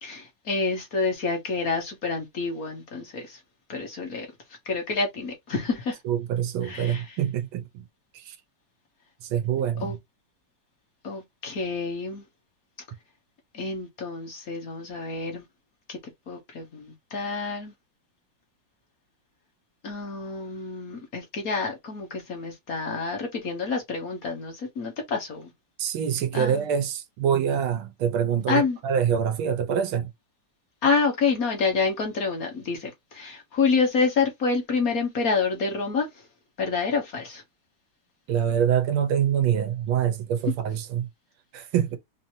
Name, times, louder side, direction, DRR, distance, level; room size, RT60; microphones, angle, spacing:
voice 1, 0.0-3.4 3.7-4.3 4.7-6.0 6.6-7.0 9.8-10.0 11.0-12.2 13.5-15.4 15.9-16.0 16.3-17.7 19.8-25.5 26.3-26.6 28.5-28.8 30.8-36.1 36.6-37.4, left 4 dB, 50° left, 1.5 m, -28 dB
voice 2, 6.0-7.8 8.1-8.4 9.2-10.0 25.8-30.1 38.3-41.1 41.5-42.0, right 8 dB, 85° right, 1.6 m, -25 dB
4.7 x 2.8 x 2.7 m
omnidirectional pair, 2.2 m